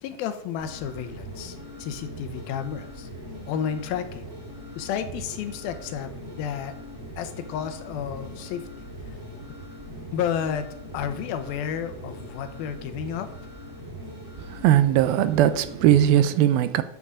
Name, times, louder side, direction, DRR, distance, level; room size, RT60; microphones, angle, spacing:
voice 1, 0.0-3.1 3.5-4.3 4.8-6.1 6.4-6.7 7.2-8.7 10.1-10.7 10.9-13.3, left 8 dB, 85° left, 2.8 m, -31 dB
sound 1, 0.6-16.2, equal, 20° right, 3.7 m, -41 dB
voice 2, 14.5-16.8, right 11 dB, 85° right, 2.6 m, -19 dB
11.5 x 7.1 x 5.0 m
omnidirectional pair, 4.2 m